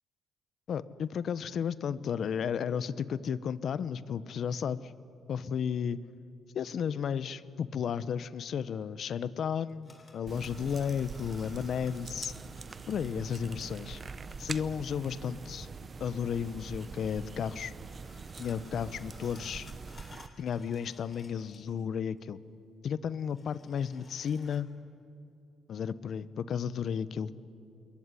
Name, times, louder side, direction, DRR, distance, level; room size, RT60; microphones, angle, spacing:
voice 1, 0.7-4.9 5.3-6.0 6.5-12.3 12.9-14.0 14.4-15.7 16.0-17.7 18.4-19.7 20.4-22.4 22.8-24.7 25.7-27.3, left 7 dB, 60° left, 17 dB, 1.0 m, -33 dB
sound 1, 9.6-14.7 16.2-21.9 22.2-22.3 23.2-24.6, left 3 dB, 35° left, 3.8 m, -58 dB
BC peeling skin, 10.3-20.3, right 5 dB, 35° right, 0.8 m, -44 dB
27.5 x 22.0 x 9.9 m, 2.7 s
cardioid pair, 90°, 0 cm